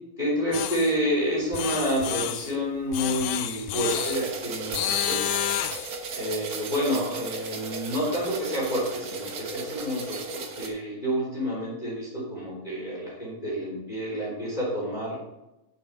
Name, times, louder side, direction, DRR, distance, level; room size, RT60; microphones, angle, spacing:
voice 1, 0.2-5.2 6.1-15.2, equal, 15° left, -6 dB, 3.4 m, -29 dB
sound 1, 0.5-0.9 1.5-2.5 2.9-4.2 4.7-5.9, left 12 dB, 85° left, 2.0 m, -29 dB
sound 2, 3.9-10.7, right 3 dB, 70° right, 0.9 m, -35 dB
9.7 x 7.8 x 4.0 m, 0.94 s
omnidirectional pair, 3.4 m